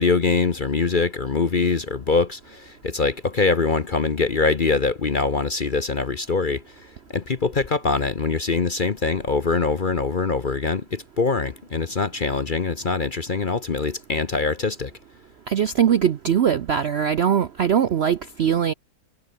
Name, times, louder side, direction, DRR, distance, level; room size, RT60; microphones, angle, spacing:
voice 1, 0.0-14.9, left 4 dB, 35° left, 0.9 m, -23 dB
voice 2, 15.5-18.7, right 8 dB, 55° right, 0.7 m, -21 dB
omnidirectional pair, 1.8 m